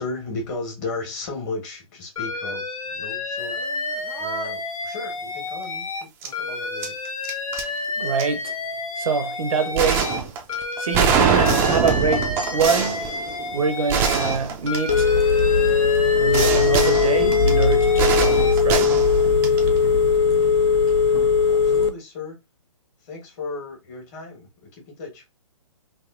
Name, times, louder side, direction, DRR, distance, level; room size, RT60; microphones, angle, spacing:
voice 1, 0.0-3.6 4.2-7.0 21.4-22.4 23.0-25.2, left 3 dB, 30° left, 1.4 m, -35 dB
Alarm, 2.2-6.0 6.3-10.2 10.5-14.4 14.7-18.5, left 3 dB, 75° left, 0.9 m, -30 dB
sound 1, 3.5-3.7 4.1-4.5 6.2-6.3 6.8-7.6 8.2-8.3 9.8-15.4 16.3-19.8, right 6 dB, 15° right, 0.3 m, -24 dB
voice 2, 8.0-8.5 9.0-10.1 10.8-13.1 13.5-15.1 16.1-18.9 19.8-19.9, right 5 dB, 75° right, 0.6 m, -25 dB
Telephone, 14.9-21.9, left 5 dB, 50° left, 0.5 m, -18 dB
3.5 x 2.7 x 2.5 m
hypercardioid pair, 140°, 18 cm